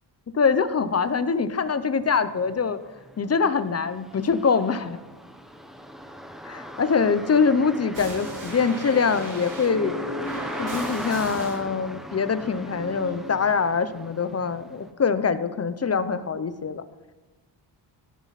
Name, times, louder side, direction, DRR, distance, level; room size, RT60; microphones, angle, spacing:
voice 1, 0.3-2.8 3.2-5.0 6.4-10.0 10.6-16.8, left 5 dB, 35° left, 12 dB, 0.8 m, -24 dB
sound 1, 1.5-1.6 2.0-14.9, equal, ahead, 1.0 m, -39 dB
sound 2, 7.9-11.6 12.4-13.3, equal, 75° right, 4.7 m, -36 dB
15.0 x 10.5 x 4.1 m, 1.3 s
wide cardioid pair, 120°, 44 cm